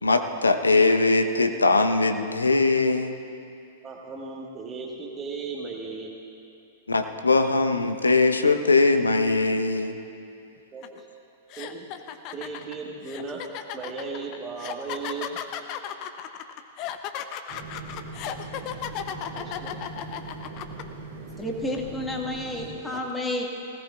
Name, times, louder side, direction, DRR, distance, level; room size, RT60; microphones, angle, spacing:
voice 1, 0.0-3.2 6.9-10.0, left 3 dB, 80° left, 7 dB, 0.9 m, -21 dB
voice 2, 3.8-6.2 10.7-11.0 11.6-11.9 12.3-13.4 13.7-15.4 19.4-19.7, right 4 dB, 20° right, -3 dB, 1.5 m, -36 dB
sound 1, 10.8-11.0 11.5-20.8, left 10 dB, 40° left, 0.7 m, -35 dB
sound 2, 17.5-22.7, right 3 dB, 50° right, 2.3 m, -40 dB
voice 3, 21.4-23.4, left 1 dB, 10° left, 0 dB, 1.8 m, -30 dB
19.5 x 17.0 x 2.4 m, 2.5 s
figure-of-eight pair, 100°, 0 cm